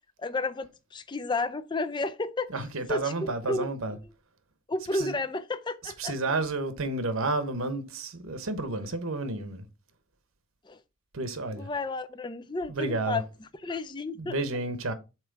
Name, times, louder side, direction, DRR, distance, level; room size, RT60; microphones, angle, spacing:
voice 1, 0.2-2.5 2.9-3.7 4.7-6.1 10.7-10.8 11.6-13.2 13.6-14.4, left 2 dB, 20° left, 0.4 m, -32 dB
voice 2, 2.5-4.0 4.9-5.2 5.8-9.7 11.1-11.7 12.7-13.2 14.2-14.9, right 2 dB, 85° right, 1.0 m, -31 dB
7.4 x 3.1 x 4.7 m
head